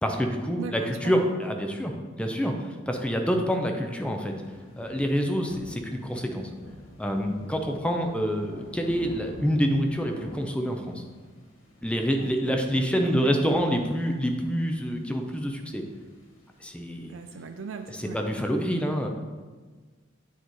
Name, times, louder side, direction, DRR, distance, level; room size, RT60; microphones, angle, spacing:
voice 1, 0.0-4.3 4.8-6.5 7.0-11.0 11.8-15.8 16.6-17.1 18.0-19.1, equal, 5° left, 3 dB, 0.5 m, -27 dB
voice 2, 0.6-1.2 12.1-13.6 17.1-18.2, right 5 dB, 70° right, 5 dB, 0.4 m, -39 dB
sound 1, 4.1-18.3, left 1 dB, 85° left, 1.4 m, -48 dB
8.5 x 3.1 x 4.0 m, 1.4 s
head